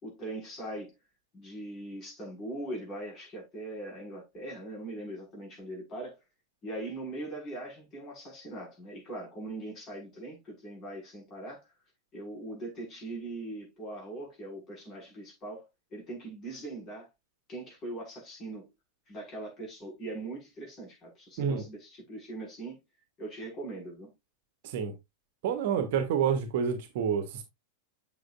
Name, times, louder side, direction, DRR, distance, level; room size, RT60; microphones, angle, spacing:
voice 1, 0.0-0.9 1.3-6.2 6.6-11.7 12.1-17.1 17.5-18.7 19.1-22.8 23.2-24.1, right 2 dB, 30° left, 5.5 m, -41 dB
voice 2, 25.4-27.4, right 7 dB, 50° right, 1.2 m, -28 dB
7.9 x 6.9 x 2.5 m
figure-of-eight pair, 90°, 0 cm